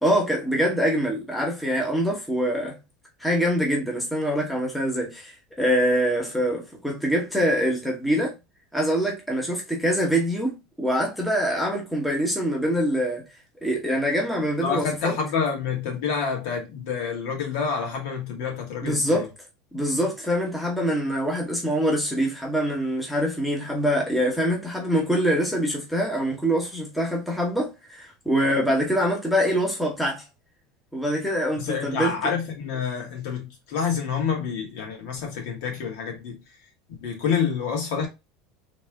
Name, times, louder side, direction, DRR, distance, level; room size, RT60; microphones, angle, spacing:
voice 1, 0.0-2.8 3.2-8.3 8.7-13.2 13.6-15.1 18.8-19.3 19.7-30.2 30.9-32.1, equal, ahead, 1.2 m, -24 dB
voice 2, 14.6-19.3 31.6-36.4 37.0-38.1, left 6 dB, 65° left, 2.2 m, -28 dB
4.0 x 3.3 x 3.7 m
supercardioid pair, 150°, 0 cm